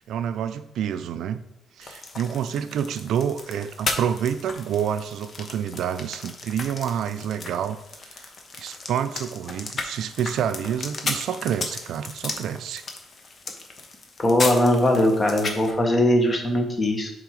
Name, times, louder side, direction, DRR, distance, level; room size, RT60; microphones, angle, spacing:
voice 1, 0.0-1.4 1.8-7.8 8.1-8.3 8.6-12.8, right 8 dB, 75° right, 11 dB, 0.5 m, -28 dB
sound 1, 1.8-15.7, left 3 dB, 45° left, 1.0 m, -35 dB
voice 2, 14.2-17.1, left 1 dB, 30° left, 2 dB, 1.5 m, -20 dB
6.9 x 3.6 x 4.8 m, 0.80 s
cardioid pair, 90°, 0 cm